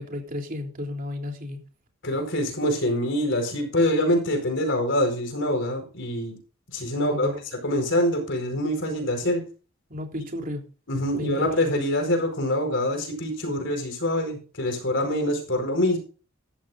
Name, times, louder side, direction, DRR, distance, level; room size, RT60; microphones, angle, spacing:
voice 1, 0.0-1.6 6.9-7.3 9.9-10.6 11.1-11.5, left 1 dB, 45° right, 3.3 m, -32 dB
voice 2, 2.0-6.4 6.7-7.3 7.6-9.4 10.9-16.0, left 1 dB, 60° left, 4.8 m, -25 dB
14.0 x 13.0 x 2.6 m
head